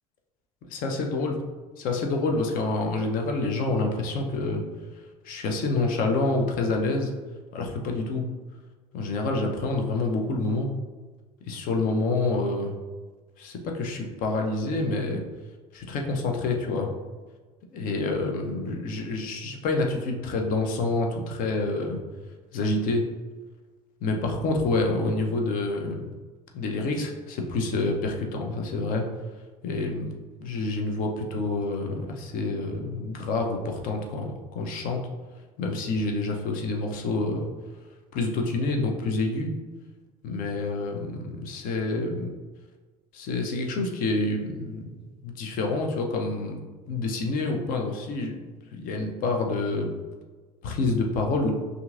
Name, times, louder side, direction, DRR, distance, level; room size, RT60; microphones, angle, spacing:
voice 1, 0.7-1.3 1.8-4.6 5.3-7.1 7.5-8.2 8.9-10.7 11.4-12.8 13.4-15.2 15.7-16.9 17.7-22.0 22.5-23.0 24.0-26.1 26.5-29.0 29.6-30.1 30.4-35.0 35.6-37.5 38.1-39.5 40.2-42.3 43.1-44.8 45.2-46.6 46.9-48.3 48.8-49.9 50.6-51.6, left 2 dB, 45° left, 2 dB, 0.7 m, -27 dB
5.5 x 2.6 x 2.5 m, 1.3 s
figure-of-eight pair, 65°, 20 cm